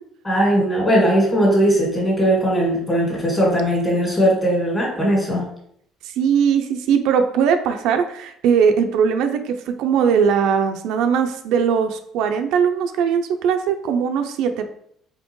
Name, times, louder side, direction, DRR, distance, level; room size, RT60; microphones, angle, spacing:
voice 1, 0.3-5.5, equal, 20° left, -3 dB, 1.8 m, -19 dB
voice 2, 6.0-14.6, right 7 dB, 70° right, 6 dB, 0.4 m, -20 dB
4.3 x 3.8 x 3.0 m, 0.69 s
cardioid pair, 145°, 0 cm